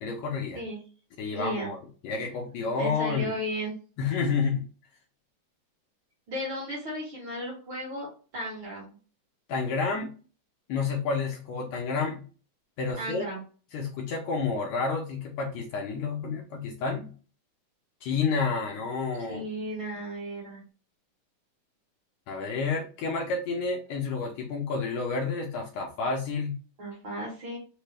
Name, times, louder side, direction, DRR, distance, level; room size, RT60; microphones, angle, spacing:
voice 1, 0.0-0.6 1.2-3.3 4.0-4.6 9.5-10.1 10.7-12.2 12.8-13.3 13.7-17.1 18.0-19.4 22.3-26.5, left 4 dB, 80° left, 0 dB, 1.7 m, -30 dB
voice 2, 1.3-1.7 2.8-3.8 6.3-8.9 13.0-13.4 19.3-20.6 26.8-27.6, equal, 50° right, -4 dB, 1.6 m, -35 dB
4.9 x 2.2 x 3.2 m, 0.37 s
omnidirectional pair, 3.6 m